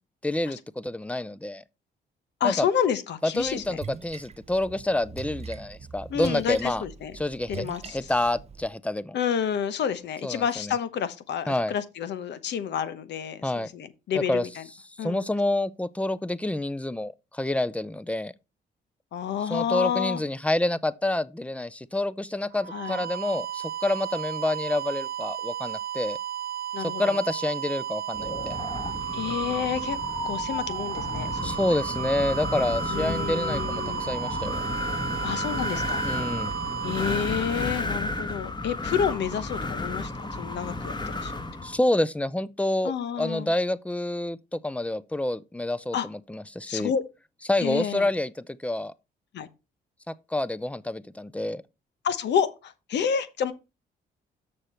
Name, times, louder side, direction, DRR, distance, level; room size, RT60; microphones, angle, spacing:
voice 1, 0.2-1.6 2.4-2.7 3.2-6.8 7.2-7.7 7.9-9.2 10.2-10.7 11.5-11.7 13.4-13.7 14.3-14.5 15.0-18.3 19.5-26.2 26.8-28.6 31.4-34.6 36.0-36.5 41.6-42.9 43.2-46.9 47.5-48.9 50.1-51.6, left 1 dB, 5° left, 0.6 m, -28 dB
voice 2, 2.4-3.8 6.1-7.1 7.5-8.1 9.1-14.6 15.0-15.3 19.1-20.2 22.7-23.0 26.7-27.2 29.1-30.0 30.2-31.8 32.9-34.1 35.2-36.0 36.8-41.3 42.8-43.5 45.9-46.1 46.7-47.0 47.6-48.1 49.3-49.5 52.0-53.5, left 8 dB, 75° left, 1.0 m, -29 dB
Splash splatter, 3.4-8.7, right 5 dB, 35° right, 0.6 m, -42 dB
sound 1, 22.5-38.3, right 11 dB, 55° right, 0.9 m, -34 dB
Wind, 28.1-41.8, left 2 dB, 25° left, 1.5 m, -32 dB
6.7 x 6.4 x 4.3 m
cardioid pair, 70°, 18 cm